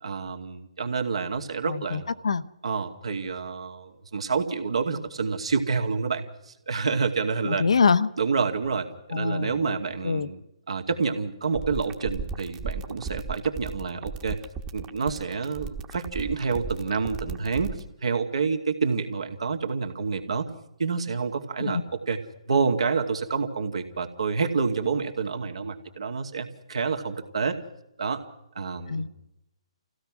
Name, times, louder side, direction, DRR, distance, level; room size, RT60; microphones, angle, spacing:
voice 1, 0.0-2.1 2.6-7.6 8.2-10.4 10.7-14.4 14.7-17.7 18.0-20.5 20.8-22.2 22.5-27.6 28.0-28.2 28.6-29.1, right 5 dB, 70° right, 5 dB, 2.3 m, -28 dB
voice 2, 1.7-2.4 7.4-8.1 9.1-9.8 10.0-10.3 21.7-21.8 28.9-29.1, left 5 dB, 70° left, 13 dB, 0.9 m, -24 dB
sound 1, 11.4-17.8, right 5 dB, 20° right, 1.3 m, -35 dB
27.5 x 16.0 x 6.2 m, 0.87 s
figure-of-eight pair, 135°, 3 cm